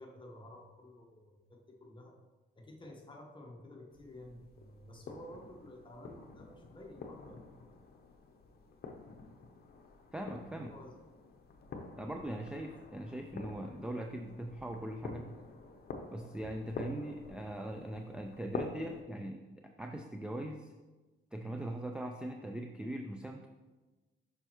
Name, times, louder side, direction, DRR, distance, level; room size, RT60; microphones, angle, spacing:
voice 1, 0.0-2.2 2.6-7.5 8.5-8.6 10.5-10.9, left 1 dB, 25° left, 1 dB, 1.2 m, -52 dB
sound 1, 3.9-19.0, left 4 dB, 50° left, 0.8 m, -48 dB
voice 2, 10.1-10.7 12.0-15.3 16.1-19.4 19.8-20.7 21.3-23.5, right 1 dB, 5° right, 3 dB, 0.4 m, -40 dB
6.7 x 5.3 x 3.1 m, 1.2 s
cardioid pair, 90°, 20 cm